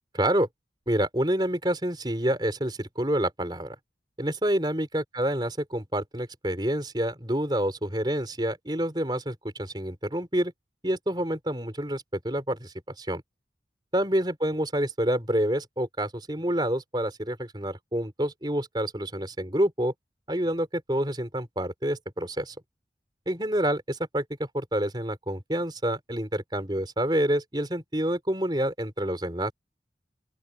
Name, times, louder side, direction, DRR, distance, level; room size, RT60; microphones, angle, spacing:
voice 1, 0.2-0.5 0.9-3.7 4.2-10.5 10.8-13.2 13.9-19.9 20.3-22.5 23.2-29.5, right 1 dB, 25° right, 5.0 m, -28 dB
open air
head